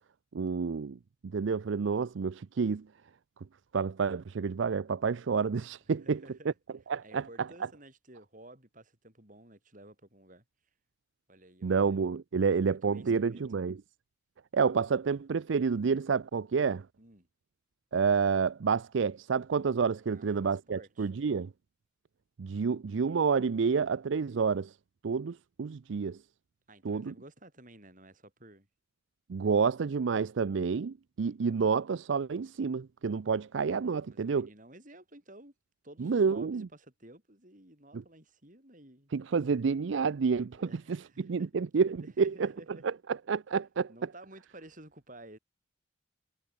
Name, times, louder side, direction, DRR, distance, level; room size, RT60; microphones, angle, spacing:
voice 1, 0.3-1.0 1.3-2.8 3.7-6.2 6.9-7.2 11.6-13.7 14.5-16.8 17.9-21.5 22.4-24.7 25.0-26.2 26.8-27.1 29.3-34.5 36.0-36.7 39.1-40.6 41.2-42.5 43.3-43.9, right 5 dB, 70° right, 0.5 m, -29 dB
voice 2, 5.9-6.6 7.0-10.4 11.3-11.9 12.4-13.5 17.0-17.3 20.1-21.1 26.7-28.7 34.0-35.5 35.8-39.1 40.5-41.6 42.0-42.9 43.9-45.4, right 1 dB, 40° right, 7.5 m, -53 dB
head